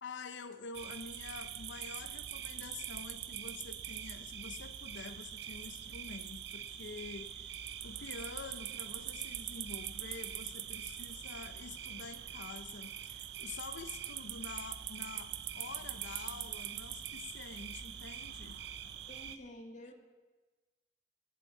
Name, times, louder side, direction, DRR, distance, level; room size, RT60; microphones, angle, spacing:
voice 1, 0.0-18.6, left 4 dB, 85° left, 0.7 m, -47 dB
sound 1, 0.7-19.4, right 10 dB, 65° right, 0.6 m, -43 dB
voice 2, 19.1-19.9, left 1 dB, 40° left, 1.7 m, -50 dB
12.0 x 7.7 x 8.4 m
head